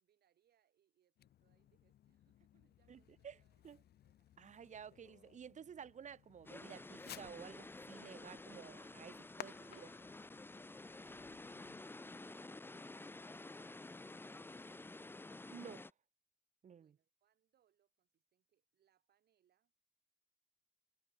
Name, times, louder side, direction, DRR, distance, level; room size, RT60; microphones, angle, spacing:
voice 1, 0.0-4.3 4.9-5.0 16.8-19.7, right 10 dB, 80° right, 6.8 m, -80 dB
Fireworks, 1.2-11.9, left 12 dB, 80° left, 0.8 m, -59 dB
voice 2, 2.9-3.4 3.6-3.8 4.4-9.9 15.5-15.9 16.6-16.9, right 8 dB, 50° right, 1.1 m, -53 dB
sound 1, 6.4-15.9, left 2 dB, 15° left, 1.1 m, -51 dB
wide cardioid pair, 140°, 16 cm